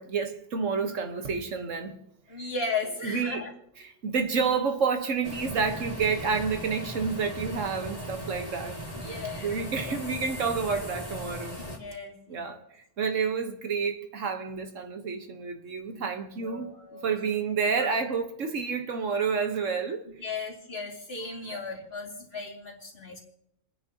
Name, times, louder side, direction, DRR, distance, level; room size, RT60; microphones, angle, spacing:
voice 1, 0.0-2.0 3.0-3.5 3.8-8.8 9.4-11.6 12.3-12.6 13.0-16.7 17.0-20.0 21.5-21.6, right 5 dB, 75° right, 1.5 m, -29 dB
voice 2, 2.3-3.5 8.9-10.0 11.6-12.6 15.9-16.1 16.4-17.1 17.7-17.9 20.1-23.2, left 4 dB, 50° left, 2.7 m, -36 dB
sound 1, 5.2-11.8, equal, 30° left, 2.3 m, -38 dB
29.0 x 10.0 x 2.9 m
omnidirectional pair, 1.3 m